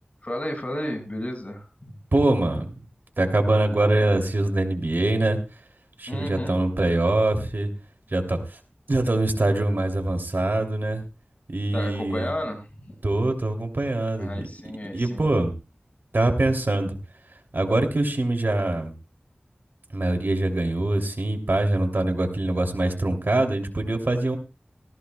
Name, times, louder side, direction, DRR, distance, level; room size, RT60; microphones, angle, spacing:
voice 1, 0.2-2.0 6.1-6.6 11.7-13.0 14.2-15.3, left 1 dB, 40° left, 3 dB, 6.0 m, -32 dB
voice 2, 2.1-2.7 3.2-5.4 6.0-7.7 8.1-8.6 8.9-11.0 11.5-12.3 13.0-14.3 14.9-15.5 16.1-17.0 17.5-18.9 19.9-24.4, right 2 dB, 65° right, 5 dB, 3.0 m, -23 dB
18.0 x 17.0 x 2.3 m, 0.31 s
wide cardioid pair, 60°, 4 cm